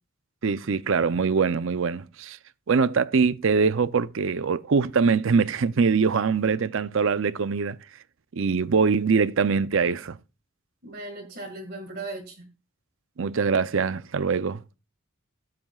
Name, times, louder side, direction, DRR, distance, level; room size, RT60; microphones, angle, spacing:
voice 1, 0.4-2.4 2.7-7.8 8.3-10.2 13.2-14.6, right 5 dB, 65° right, 0.5 m, -23 dB
voice 2, 10.8-12.5, right 2 dB, 45° right, 1.9 m, -37 dB
16.0 x 7.7 x 2.4 m
head